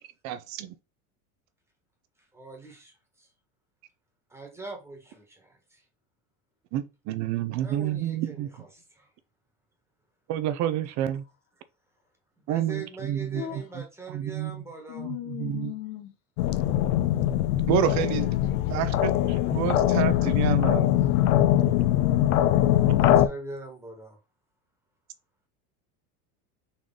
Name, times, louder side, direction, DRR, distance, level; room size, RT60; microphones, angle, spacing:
voice 1, 0.2-0.7 6.7-8.5 10.3-11.2 12.5-13.4 14.1-14.6 15.0-15.1 15.4-15.7 17.7-18.3 18.7-20.9, right 11 dB, 40° right, 0.5 m, -29 dB
voice 2, 2.3-3.3 4.3-5.8 7.6-9.1 12.4-15.1 22.7-24.2, right 3 dB, 5° right, 1.3 m, -42 dB
voice 3, 13.3-13.6 14.9-16.1 18.2-18.9, left 13 dB, 60° left, 1.5 m, -38 dB
sound 1, 16.4-23.3, left 12 dB, 80° left, 0.6 m, -22 dB
4.1 x 3.1 x 3.7 m
supercardioid pair, 130°, 42 cm